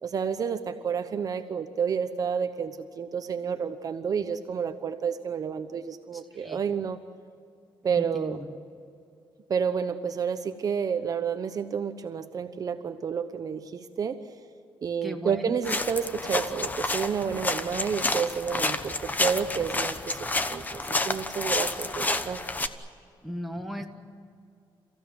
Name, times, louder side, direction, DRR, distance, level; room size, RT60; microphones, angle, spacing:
voice 1, 0.0-7.0 7.8-8.4 9.5-14.2 14.8-22.4, right 6 dB, 45° right, 9 dB, 0.9 m, -30 dB
voice 2, 7.9-8.5 15.0-15.6 23.2-23.9, equal, ahead, 2 dB, 1.8 m, -36 dB
sound 1, 15.6-22.7, left 2 dB, 20° left, 1.0 m, -29 dB
29.5 x 15.5 x 9.5 m, 2.4 s
cardioid pair, 150°, 9 cm